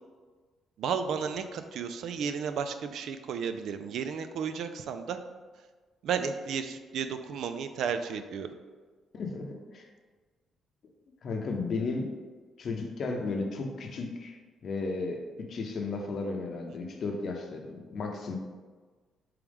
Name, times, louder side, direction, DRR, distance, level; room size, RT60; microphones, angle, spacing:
voice 1, 0.8-5.2 6.0-8.5, right 6 dB, 75° right, 9 dB, 0.3 m, -33 dB
voice 2, 9.1-9.9 11.2-12.1 12.6-18.4, left 3 dB, 55° left, 3 dB, 0.7 m, -34 dB
4.9 x 3.0 x 3.5 m, 1.4 s
cardioid pair, 90°, 0 cm